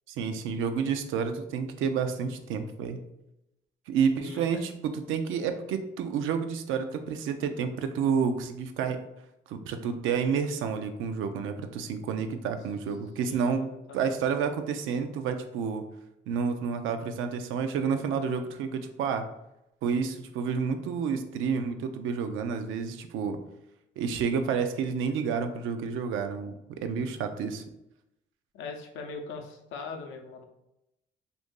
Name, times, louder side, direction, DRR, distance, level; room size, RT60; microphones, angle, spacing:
voice 1, 0.1-3.0 3.9-9.0 9.5-15.8 16.3-19.3 19.8-23.4 24.0-27.6, right 6 dB, 85° right, 7 dB, 0.4 m, -30 dB
voice 2, 4.2-4.6 13.2-14.2 28.5-30.4, left 4 dB, 90° left, 4 dB, 0.6 m, -41 dB
2.7 x 2.5 x 3.6 m, 0.86 s
cardioid pair, 90°, 20 cm